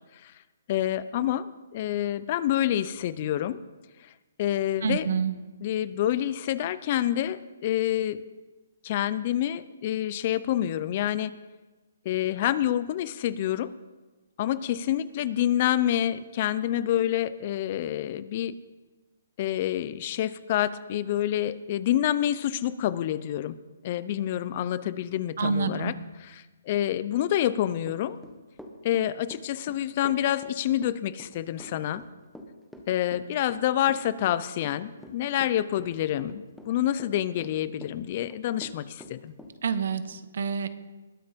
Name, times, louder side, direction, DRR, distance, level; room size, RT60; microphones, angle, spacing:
voice 1, 0.7-3.6 4.0-4.1 4.4-5.1 5.6-8.2 8.8-11.4 12.0-13.7 14.4-18.5 19.4-23.6 23.8-25.9 26.2-28.2 28.8-32.0 32.9-39.3, left 12 dB, 40° left, 16 dB, 0.6 m, -27 dB
voice 2, 4.8-5.3 25.4-25.9 39.6-40.7, right 6 dB, 65° right, 12 dB, 1.3 m, -27 dB
Run / Walk footsteps, 27.8-39.5, equal, ahead, 1.4 m, -46 dB
20.5 x 9.6 x 5.2 m, 1.2 s
hypercardioid pair, 150°, 0 cm